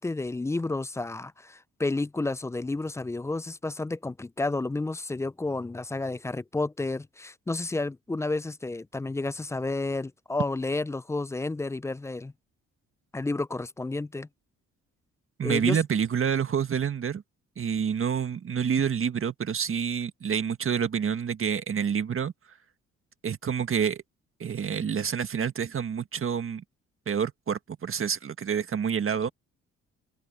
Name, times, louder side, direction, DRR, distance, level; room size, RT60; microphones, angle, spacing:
voice 1, 0.0-12.3 13.1-14.3 15.4-15.8, left 2 dB, 10° left, 0.3 m, -31 dB
voice 2, 15.4-17.2 17.6-22.3 23.2-24.0 24.4-26.6 27.1-29.3, right 7 dB, 45° right, 1.7 m, -28 dB
open air
cardioid pair, 75°, 30 cm